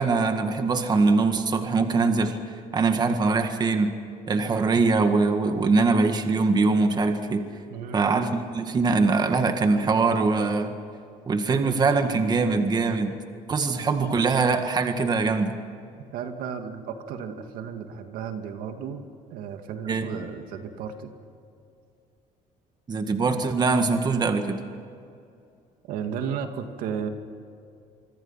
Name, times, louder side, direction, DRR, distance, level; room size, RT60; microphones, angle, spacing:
voice 1, 0.0-2.4 2.7-4.0 4.3-7.5 7.9-10.7 11.3-13.2 13.5-15.6 19.9-20.1 22.9-24.6, right 4 dB, 30° right, 6 dB, 1.9 m, -22 dB
voice 2, 7.7-8.0 16.1-19.0 19.3-21.1 25.9-27.1, right 7 dB, 80° right, 6 dB, 2.3 m, -34 dB
27.0 x 24.5 x 5.8 m, 2.6 s
cardioid pair, 130°, 15 cm